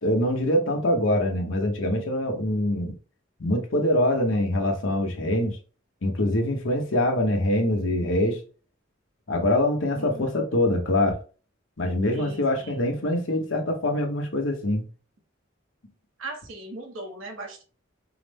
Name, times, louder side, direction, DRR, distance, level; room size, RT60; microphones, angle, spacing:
voice 1, 0.0-3.0 3.4-5.6 6.0-8.4 9.3-11.2 11.8-14.9, left 1 dB, 75° left, 1.0 m, -24 dB
voice 2, 12.1-13.0 16.2-17.6, right 2 dB, 90° right, 1.0 m, -39 dB
4.8 x 2.1 x 3.4 m
head